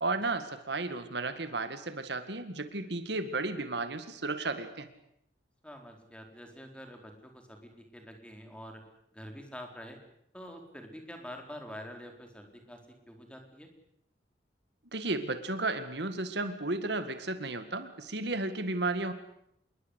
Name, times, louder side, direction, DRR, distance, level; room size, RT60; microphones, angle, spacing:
voice 1, 0.0-4.9 14.9-19.1, right 2 dB, 60° right, 10 dB, 2.0 m, -33 dB
voice 2, 5.6-8.8 9.1-10.0 10.3-13.7, equal, 5° left, 4 dB, 4.4 m, -46 dB
27.0 x 22.0 x 8.2 m, 0.74 s
head